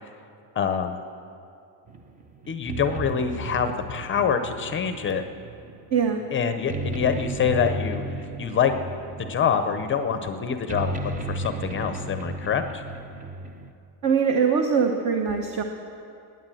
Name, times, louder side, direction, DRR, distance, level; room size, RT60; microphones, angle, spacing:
voice 1, 0.6-1.0 2.5-5.2 6.3-8.0 8.4-8.7 9.2-12.8, left 7 dB, 25° left, 8 dB, 0.6 m, -25 dB
sound 1, 1.9-13.7, right 2 dB, 20° right, 0.5 m, -34 dB
voice 2, 5.9-6.2 14.0-15.6, right 6 dB, 40° right, 4 dB, 1.0 m, -22 dB
19.0 x 9.3 x 7.6 m, 2.6 s
cardioid pair, 175°, 44 cm